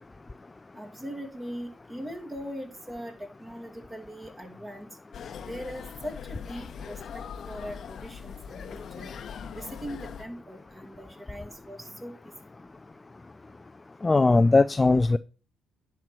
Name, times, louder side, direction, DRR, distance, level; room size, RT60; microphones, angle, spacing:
voice 1, 0.8-4.9 5.5-7.0 7.5-9.1 9.5-12.1, equal, 20° right, 2.5 m, -40 dB
sound 1, 5.1-10.2, left 7 dB, 60° left, 0.8 m, -41 dB
voice 2, 14.0-15.2, left 3 dB, 20° left, 0.4 m, -19 dB
10.5 x 4.5 x 6.0 m
cardioid pair, 90°, 0 cm